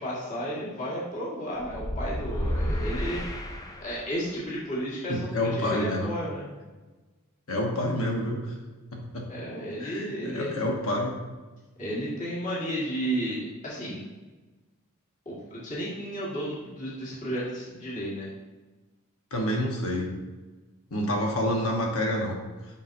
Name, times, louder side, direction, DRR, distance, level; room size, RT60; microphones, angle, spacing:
voice 1, 0.0-3.2 3.8-6.4 9.3-10.5 11.8-14.0 15.3-18.3, equal, 35° left, -7 dB, 1.8 m, -33 dB
sound 1, 1.6-4.2, equal, 15° left, 0.4 m, -31 dB
voice 2, 5.1-6.1 7.5-8.5 8.9-9.3 9.8-11.2 19.3-20.1 20.9-22.4, left 1 dB, 70° left, 0 dB, 1.2 m, -28 dB
7.2 x 5.6 x 2.6 m, 1.2 s
head